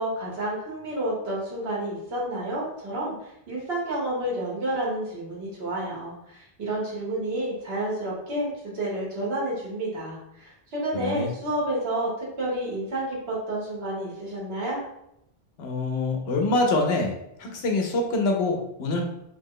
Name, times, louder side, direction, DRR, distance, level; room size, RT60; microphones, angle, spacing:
voice 1, 0.0-14.8, right 1 dB, 70° right, -5 dB, 1.4 m, -30 dB
voice 2, 10.9-11.3 15.6-19.0, left 2 dB, 75° left, 2 dB, 0.9 m, -25 dB
2.9 x 2.1 x 3.7 m, 0.81 s
omnidirectional pair, 1.1 m